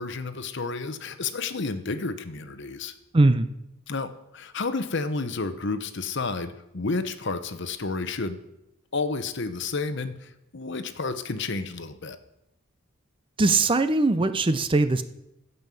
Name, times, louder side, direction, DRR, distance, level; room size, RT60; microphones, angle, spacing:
voice 1, 0.0-2.9 3.9-8.4 8.9-12.2, left 3 dB, 55° left, 10 dB, 0.9 m, -31 dB
voice 2, 3.1-3.5 13.4-15.0, right 3 dB, 25° right, 11 dB, 0.5 m, -20 dB
15.5 x 5.5 x 7.6 m, 0.86 s
head